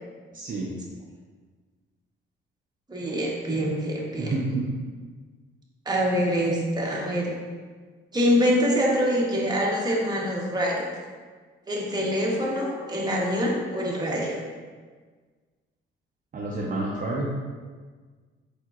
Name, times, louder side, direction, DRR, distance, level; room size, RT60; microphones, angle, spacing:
voice 1, 0.3-0.7 4.2-4.7 16.3-17.3, right 2 dB, 45° right, -4 dB, 0.7 m, -29 dB
voice 2, 2.9-4.3 5.9-7.3 8.1-10.9 11.7-14.4, equal, 20° right, -3 dB, 1.0 m, -25 dB
4.5 x 4.3 x 2.4 m, 1.5 s
cardioid pair, 90°, 20 cm